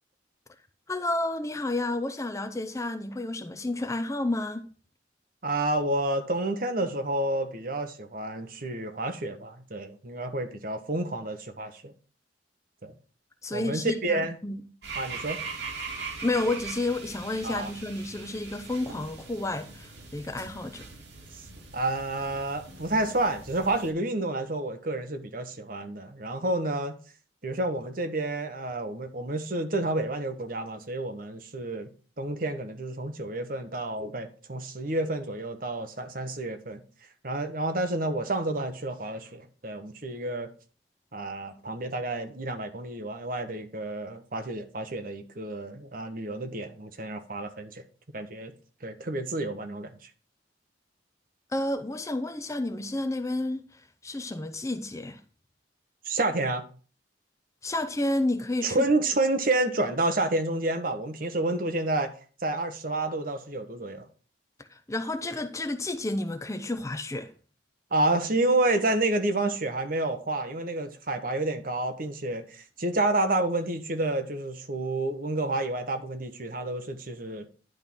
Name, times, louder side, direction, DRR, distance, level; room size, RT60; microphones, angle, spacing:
voice 1, 0.9-4.7 13.4-14.6 16.2-20.9 51.5-55.2 57.6-58.8 64.7-67.3, left 2 dB, 15° left, 0.5 m, -31 dB
voice 2, 5.4-11.9 12.8-12.9 13.5-14.3 15.0-15.4 17.4-17.7 21.7-27.0 27.4-31.9 32.2-36.8 37.2-40.5 41.1-47.8 48.1-48.5 48.8-49.9 56.0-56.6 58.6-62.1 62.4-64.1 67.9-77.5, right 2 dB, 50° right, 1.1 m, -29 dB
sound 1, 14.8-23.9, right 4 dB, 70° right, 2.9 m, -41 dB
10.5 x 3.7 x 6.1 m
head